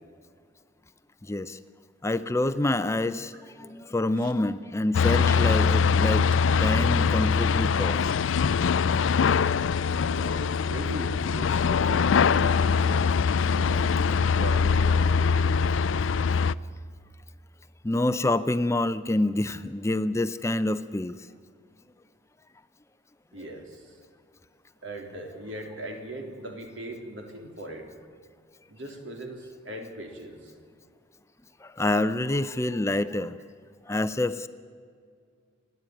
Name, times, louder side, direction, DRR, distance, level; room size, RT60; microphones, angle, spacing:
voice 1, 1.2-1.6 2.0-8.0 11.9-12.0 13.4-13.5 17.8-21.1 31.6-33.4 33.9-34.5, left 2 dB, 15° left, 13 dB, 0.5 m, -27 dB
voice 2, 3.3-3.7 4.2-4.3 10.0-13.1 13.5-15.8 23.3-23.9 24.8-27.9 28.7-30.5, right 1 dB, 80° right, 3 dB, 3.4 m, -39 dB
sound 1, 4.9-16.5, left 5 dB, 80° left, 0.4 m, -23 dB
28.5 x 11.0 x 9.0 m, 2.1 s
head